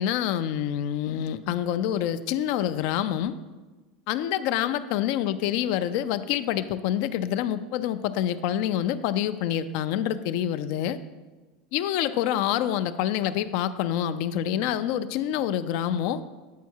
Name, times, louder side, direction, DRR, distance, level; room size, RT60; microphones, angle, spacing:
voice 1, 0.0-3.4 4.1-11.0 11.7-16.2, left 10 dB, 55° left, 12 dB, 0.3 m, -27 dB
8.2 x 4.7 x 4.4 m, 1.2 s
supercardioid pair, 150°, 3 cm